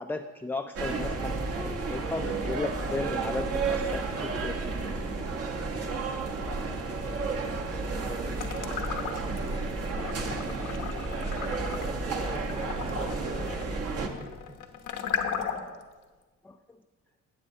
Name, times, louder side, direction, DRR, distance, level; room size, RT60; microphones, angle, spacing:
voice 1, 0.0-4.6 16.4-16.6, left 3 dB, 5° left, 6 dB, 0.3 m, -35 dB
sound 1, 0.8-14.1, right 3 dB, 50° right, 1.2 m, -32 dB
voice 2, 8.0-8.9 9.4-9.8 11.6-14.6, right 1 dB, 20° right, 7 dB, 1.0 m, -45 dB
sound 2, 8.3-9.5 9.9-15.8, left 7 dB, 85° left, 1.0 m, -36 dB
17.0 x 7.6 x 2.8 m, 1.3 s
cardioid pair, 90°, 30 cm